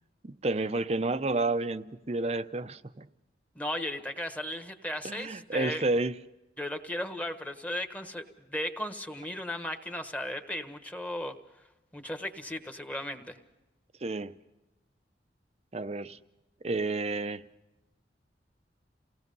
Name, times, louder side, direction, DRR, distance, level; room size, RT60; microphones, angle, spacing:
voice 1, 0.2-3.1 5.0-6.2 14.0-14.3 15.7-16.2 16.6-17.4, right 2 dB, 35° right, 0.7 m, -30 dB
voice 2, 3.5-5.9 6.6-11.4 11.9-13.4, left 1 dB, 10° left, 1.2 m, -36 dB
28.5 x 18.0 x 5.4 m
head